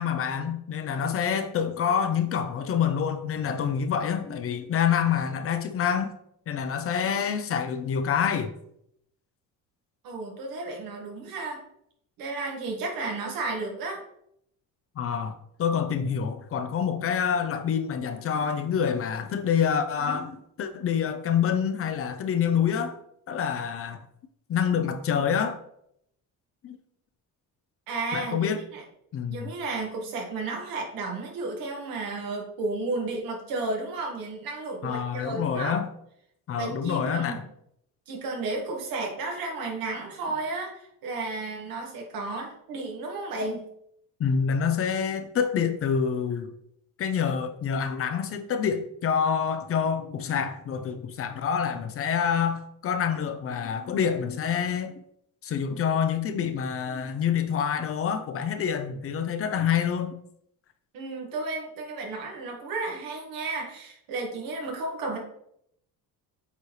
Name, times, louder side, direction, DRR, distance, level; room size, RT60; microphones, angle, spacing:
voice 1, 0.0-6.1 6.5-8.5 15.0-23.0 23.3-24.0 24.5-25.6 26.6-26.8 28.1-28.6 29.1-29.5 34.8-35.9 36.5-37.4 44.2-46.5 47.0-54.9 55.4-60.1, left 7 dB, 40° left, 0.6 m, -27 dB
voice 2, 10.0-11.6 12.2-14.0 27.9-28.8 29.3-35.8 36.5-37.4 38.1-43.7 60.9-65.2, right 3 dB, 80° right, 1.9 m, -33 dB
8.2 x 4.2 x 3.2 m
cardioid pair, 155°, 34 cm